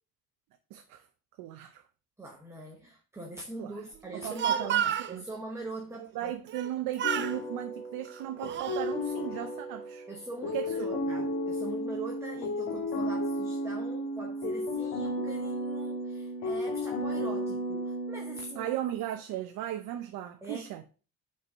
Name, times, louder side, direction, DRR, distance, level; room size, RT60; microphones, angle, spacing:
voice 1, 0.7-1.0 1.4-1.8 3.6-3.8 4.2-4.8 5.1-5.2 5.9-10.1 10.5-11.0 18.6-20.8, right 12 dB, 75° right, 0.8 m, -36 dB
voice 2, 2.2-6.3 10.1-18.7 20.4-20.7, right 2 dB, 10° right, 0.9 m, -42 dB
Speech, 4.1-5.1 6.5-6.7 7.0-7.4 8.1-8.9, right 10 dB, 35° right, 0.4 m, -30 dB
sound 1, 7.0-18.7, left 1 dB, 75° left, 1.5 m, -34 dB
5.7 x 4.7 x 5.9 m
cardioid pair, 170°, 34 cm